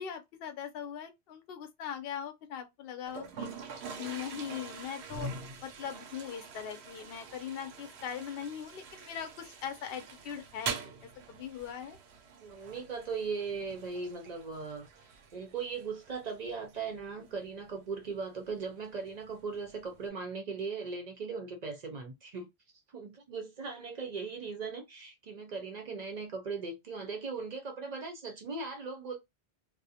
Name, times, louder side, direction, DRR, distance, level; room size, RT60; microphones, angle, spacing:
voice 1, 0.0-5.3 5.6-12.0, left 8 dB, 65° left, 0.7 m, -41 dB
Toilet flush, 3.1-20.1, right 5 dB, 75° right, 0.8 m, -45 dB
voice 2, 12.4-22.5 22.9-29.2, right 4 dB, 50° right, 0.6 m, -39 dB
2.4 x 2.1 x 2.7 m
omnidirectional pair, 1.1 m